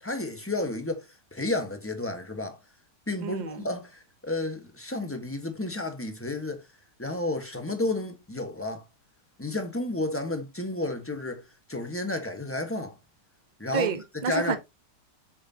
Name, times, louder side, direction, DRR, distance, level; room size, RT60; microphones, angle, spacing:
voice 1, 0.0-2.6 3.1-6.6 7.0-8.8 9.4-11.4 11.7-13.0 13.6-13.9 14.3-14.6, left 2 dB, 10° left, 1.1 m, -31 dB
voice 2, 3.2-3.7 13.7-14.6, right 6 dB, 40° right, 0.7 m, -29 dB
7.3 x 6.4 x 2.8 m
omnidirectional pair, 1.9 m